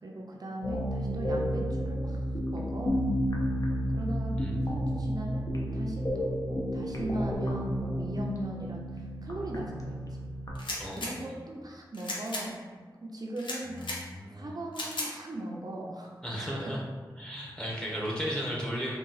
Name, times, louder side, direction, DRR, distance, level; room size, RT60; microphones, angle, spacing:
voice 1, 0.0-2.2 2.5-3.1 3.9-10.2 11.0-12.6 13.0-13.8 14.3-16.7, right 1 dB, 55° right, -2 dB, 0.5 m, -39 dB
sound 1, 0.6-10.6, equal, 45° left, 0.6 m, -31 dB
voice 2, 4.4-4.9 10.8-11.3 13.7-14.6 16.2-16.8 17.2-19.0, equal, 10° left, -4 dB, 0.9 m, -35 dB
sound 2, 10.5-11.1 11.9-12.4 13.4-14.0 14.7-15.1, left 2 dB, 80° left, 0.7 m, -35 dB
3.8 x 2.3 x 4.0 m, 1.5 s
wide cardioid pair, 80°, 8 cm